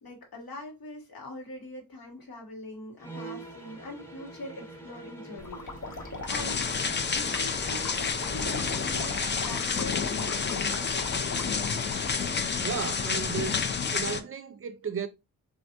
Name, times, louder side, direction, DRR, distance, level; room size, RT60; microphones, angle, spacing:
voice 1, 0.0-5.6 6.3-6.6 7.1-11.5, left 1 dB, 85° left, 1.2 m, -43 dB
sound 1, 3.0-9.1, right 2 dB, 5° left, 0.8 m, -45 dB
sound 2, 5.4-12.1, left 3 dB, 60° left, 0.9 m, -40 dB
sound 3, 6.3-14.2, left 5 dB, 35° left, 0.4 m, -29 dB
voice 2, 12.6-13.6 13.9-15.1, right 6 dB, 40° right, 0.4 m, -34 dB
3.2 x 2.4 x 2.8 m
wide cardioid pair, 105°, 34 cm